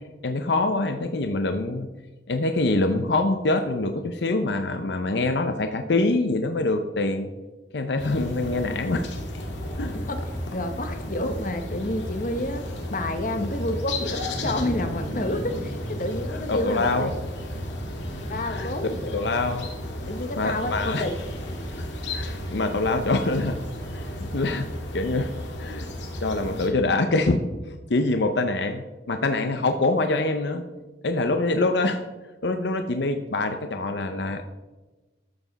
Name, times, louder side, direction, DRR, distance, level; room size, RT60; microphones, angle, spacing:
voice 1, 0.2-1.9 2.3-7.3 7.7-9.1 9.8-9.9 13.4-13.5 16.5-17.1 18.5-18.7 19.1-19.7 20.4-21.0 21.8-21.9 22.1-23.6 23.9-25.3 25.6-25.9 26.2-30.6 31.0-32.0 32.4-34.5, left 2 dB, 70° left, 7 dB, 0.7 m, -25 dB
sound 1, 8.0-26.7, left 1 dB, 85° left, 1.9 m, -33 dB
voice 2, 9.9-10.2 10.5-12.6 12.9-17.2 18.2-19.1 20.0-21.1, left 1 dB, 45° left, 7 dB, 1.1 m, -29 dB
13.0 x 7.2 x 4.0 m, 1.2 s
head